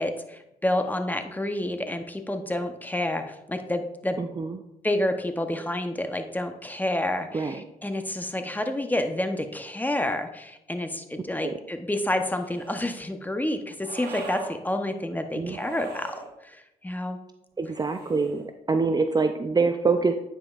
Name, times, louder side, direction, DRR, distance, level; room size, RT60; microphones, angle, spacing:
voice 1, 0.0-4.2 4.8-17.2, left 1 dB, 10° left, 7 dB, 0.8 m, -29 dB
voice 2, 4.2-4.6 7.3-7.6 11.4-11.5 15.3-15.6 17.6-18.4 18.7-20.1, right 4 dB, 25° right, 7 dB, 0.5 m, -25 dB
sound 1, 12.1-12.9 13.8-14.5 15.4-16.3 17.6-18.5, right 4 dB, 85° right, 1.3 m, -40 dB
9.2 x 5.2 x 2.4 m, 0.84 s
supercardioid pair, 60°, 16 cm